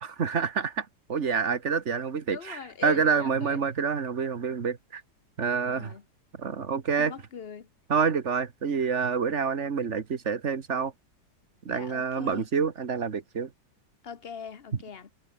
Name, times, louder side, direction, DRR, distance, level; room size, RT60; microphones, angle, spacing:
voice 1, 0.0-5.0 5.4-5.9 6.4-7.1 7.9-10.9 11.7-13.5, right 6 dB, 40° right, 1.6 m, -27 dB
voice 2, 2.3-3.6 5.6-6.0 7.0-7.7 11.7-12.4 14.0-15.1, left 6 dB, 40° left, 1.0 m, -40 dB
omnidirectional pair, 2.0 m